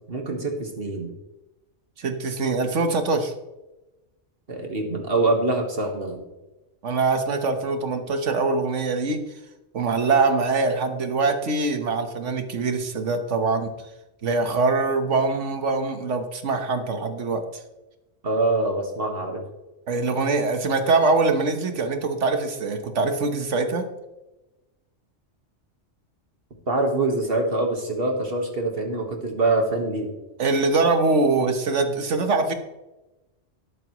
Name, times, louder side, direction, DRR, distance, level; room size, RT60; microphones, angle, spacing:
voice 1, 0.1-1.1 4.5-6.2 18.2-19.4 26.7-30.1, right 2 dB, 55° right, 3 dB, 1.7 m, -24 dB
voice 2, 2.0-3.3 6.8-9.2 9.7-13.7 14.2-17.4 19.9-23.9 30.4-32.5, right 3 dB, 80° right, 7 dB, 1.5 m, -23 dB
12.0 x 12.0 x 3.1 m, 1.0 s
omnidirectional pair, 1.2 m